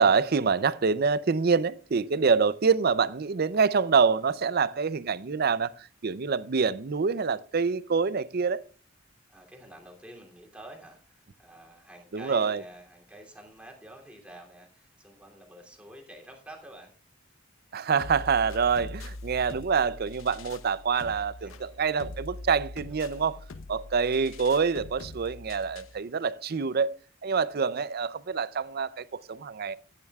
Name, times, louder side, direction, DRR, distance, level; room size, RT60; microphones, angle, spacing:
voice 1, 0.0-8.6 12.1-12.6 17.7-23.4 23.7-27.0 27.2-29.8, right 5 dB, 50° right, 0.5 m, -26 dB
voice 2, 9.3-16.9 21.4-21.6 22.9-23.4, right 1 dB, 5° right, 2.8 m, -49 dB
sound 1, 18.0-26.0, left 2 dB, 90° left, 0.8 m, -43 dB
15.0 x 10.5 x 2.3 m
head